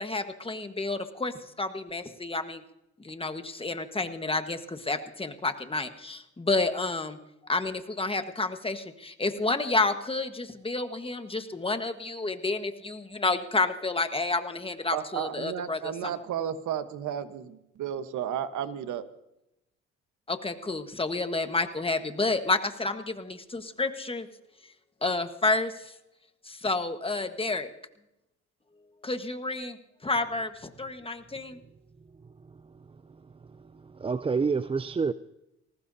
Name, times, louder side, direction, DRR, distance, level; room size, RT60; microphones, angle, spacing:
voice 1, 0.0-2.6 3.0-7.2 7.5-16.1 20.3-24.3 25.0-25.9 26.4-27.7 29.0-29.8 30.0-31.6, left 3 dB, 20° left, 1.4 m, -30 dB
voice 2, 14.9-19.1, right 9 dB, 75° right, 1.2 m, -33 dB
voice 3, 32.2-33.2 33.5-35.1, right 5 dB, 20° right, 0.4 m, -30 dB
20.5 x 19.0 x 2.8 m
cardioid pair, 90°, 30 cm